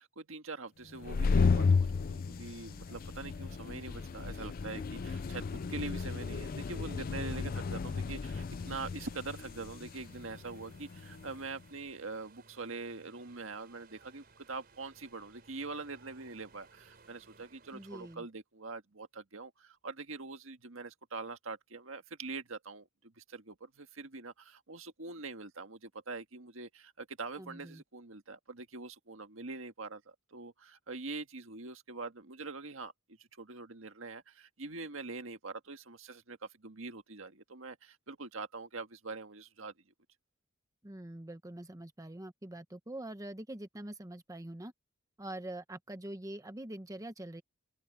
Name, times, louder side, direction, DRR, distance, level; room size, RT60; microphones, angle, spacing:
voice 1, 0.0-32.9 33.2-39.7, right 3 dB, 70° right, 1.8 m, -44 dB
sound 1, 0.9-11.4, left 4 dB, 45° left, 0.4 m, -33 dB
sound 2, 2.3-18.2, right 4 dB, 50° right, 4.6 m, -62 dB
voice 2, 17.7-18.3 27.3-27.8 40.8-44.7 45.2-47.4, right 1 dB, 15° right, 1.0 m, -44 dB
open air
head